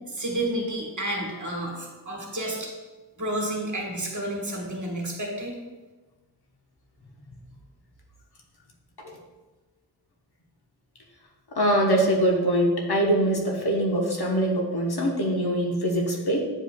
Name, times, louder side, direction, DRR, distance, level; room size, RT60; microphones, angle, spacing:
voice 1, 0.1-2.7 3.2-5.5, right 1 dB, 45° right, -1 dB, 1.5 m, -30 dB
voice 2, 11.5-16.4, right 1 dB, 65° left, 0 dB, 1.2 m, -23 dB
8.9 x 4.9 x 2.3 m, 1.2 s
wide cardioid pair, 75°, 41 cm